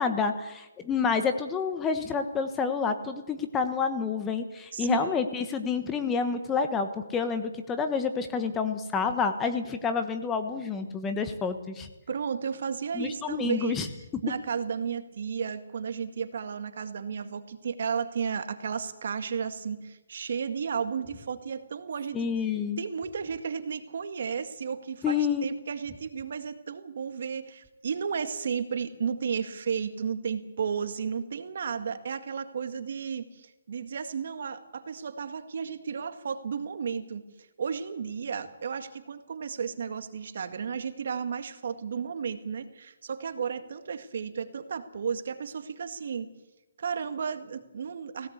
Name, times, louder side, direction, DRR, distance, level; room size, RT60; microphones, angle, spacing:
voice 1, 0.0-11.9 12.9-13.9 22.1-22.8 25.0-25.4, left 5 dB, 10° left, 7 dB, 1.2 m, -29 dB
voice 2, 4.7-5.2 12.1-13.8 14.2-22.3 22.8-37.2 37.6-46.3 46.8-48.3, right 6 dB, 60° right, 9 dB, 1.9 m, -33 dB
19.5 x 17.0 x 8.2 m, 1.0 s
hypercardioid pair, 160°, 0 cm